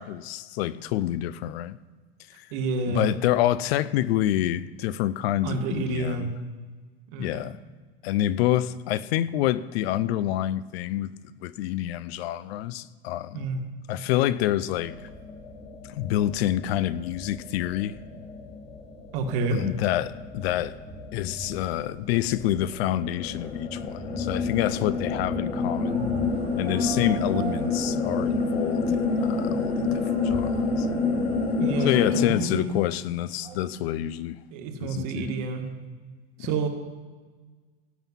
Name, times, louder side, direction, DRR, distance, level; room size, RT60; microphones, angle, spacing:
voice 1, 0.0-1.8 2.4-2.5 2.9-6.3 7.2-7.6 8.0-13.5 13.9-15.0 16.0-18.0 19.5-20.7 21.1-26.1 26.6-30.9 31.8-34.4 34.8-35.3 36.4-36.5, left 13 dB, 70° left, 0.6 m, -27 dB
voice 2, 2.5-3.1 5.4-6.3 7.1-7.4 13.3-13.6 19.1-19.6 31.6-31.9 32.1-32.7 34.5-35.7 36.4-36.7, right 4 dB, 45° right, 1.7 m, -29 dB
sound 1, 14.7-32.2, left 3 dB, 20° left, 1.5 m, -29 dB
sound 2, 25.4-33.8, right 6 dB, 15° right, 0.9 m, -44 dB
16.5 x 9.1 x 5.6 m
supercardioid pair, 175°, 33 cm